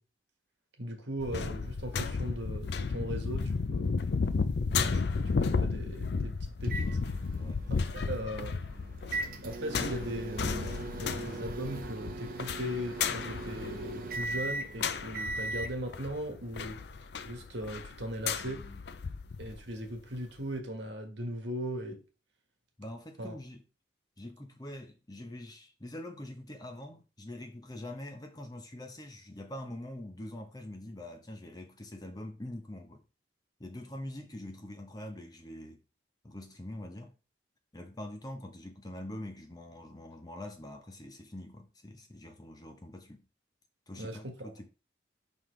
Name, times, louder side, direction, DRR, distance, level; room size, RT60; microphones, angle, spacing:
voice 1, 0.8-4.0 4.6-7.0 7.7-8.6 9.4-16.8 17.2-18.6 19.4-22.0 23.2-23.3 44.0-44.4, equal, 70° right, 1.5 m, -38 dB
sound 1, 1.2-19.6 20.0-20.1, left 5 dB, 60° left, 0.5 m, -34 dB
sound 2, 6.6-15.7, right 2 dB, 50° right, 0.8 m, -40 dB
voice 2, 18.4-18.8 22.8-23.6 24.2-33.0 33.6-35.8 36.2-37.1 37.7-43.3 43.9-44.7, left 1 dB, 20° left, 0.9 m, -44 dB
5.7 x 5.4 x 3.2 m
head